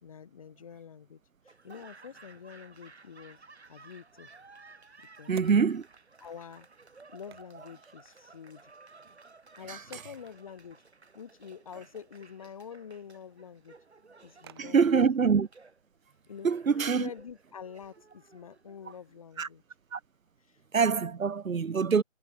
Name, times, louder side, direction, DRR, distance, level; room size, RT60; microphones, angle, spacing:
voice 1, 0.0-3.4 3.7-4.3 5.2-5.4 6.2-6.7 7.1-8.7 9.6-10.8 11.1-13.8 14.2-15.0 16.3-19.6 20.4-20.6, left 7 dB, 25° left, 4.1 m, -47 dB
Laughter / Applause, 1.4-19.5, right 3 dB, 55° right, 4.8 m, -56 dB
sound 1, 3.6-21.3, right 11 dB, 20° right, 5.5 m, -60 dB
voice 2, 5.3-5.8 14.6-15.5 16.4-17.1 19.4-19.5 19.9-20.0 20.7-22.0, right 6 dB, 80° right, 0.7 m, -25 dB
figure-of-eight pair, 160°, 40 cm